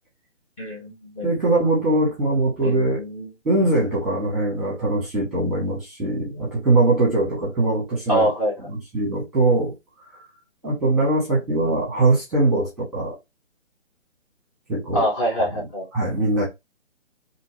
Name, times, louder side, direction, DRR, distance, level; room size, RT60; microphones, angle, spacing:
voice 1, 0.6-1.3 2.6-3.3 8.1-8.5 11.7-11.8 14.9-15.8, equal, 30° left, 1.1 m, -25 dB
voice 2, 1.2-3.0 3.4-8.3 8.7-9.7 10.1-10.2 10.6-13.2 14.7-15.1 15.9-16.5, right 2 dB, ahead, 1.2 m, -21 dB
2.7 x 2.7 x 3.1 m
figure-of-eight pair, 150°, 36 cm